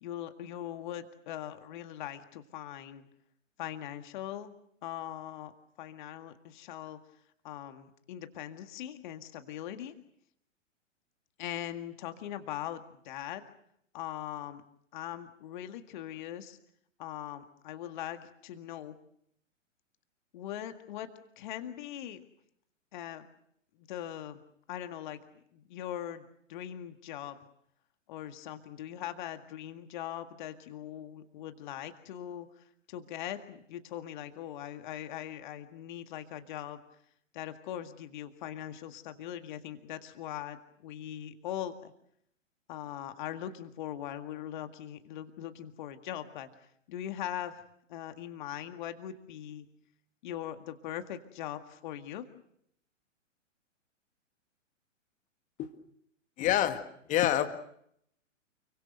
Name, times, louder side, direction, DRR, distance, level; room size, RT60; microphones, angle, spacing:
voice 1, 0.0-3.1 3.6-4.5 4.8-5.5 5.8-7.0 7.4-9.9 11.4-13.4 13.9-14.6 14.9-16.6 17.0-19.0 20.3-21.1 21.4-22.2 22.9-23.3 23.8-24.4 24.7-25.2 25.5-27.4 28.1-36.8 37.3-41.9 42.7-47.6 47.9-49.7 50.2-52.3, left 11 dB, 40° left, 8 dB, 1.9 m, -41 dB
voice 2, 56.4-56.8 57.1-57.5, left 12 dB, 20° left, 9 dB, 1.7 m, -25 dB
29.5 x 23.5 x 6.6 m, 0.72 s
figure-of-eight pair, 115°, 38 cm